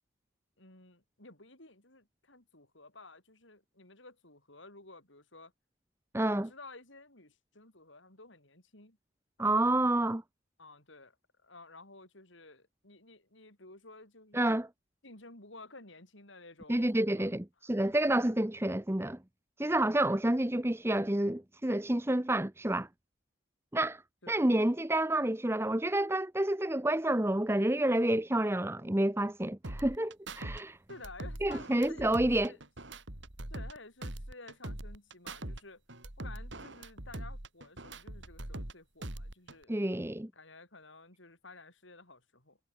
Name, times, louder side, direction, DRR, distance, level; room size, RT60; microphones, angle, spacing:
voice 1, 0.6-5.5 6.2-9.0 9.4-9.8 10.6-14.4 15.0-17.3 17.6-18.0 24.2-24.5 30.9-32.6 33.5-35.8 36.2-39.8 40.3-42.6, left 2 dB, 70° left, 7.2 m, -53 dB
voice 2, 6.1-6.5 9.4-10.2 14.3-14.7 16.7-19.2 19.6-22.9 23.7-24.0 24.3-30.8 31.4-32.5 39.7-40.3, right 1 dB, 10° right, 0.8 m, -29 dB
sound 1, 29.6-30.6 30.9-33.8 34.0-35.6 35.9-38.7 39.0-39.6, right 1 dB, 65° right, 3.2 m, -42 dB
head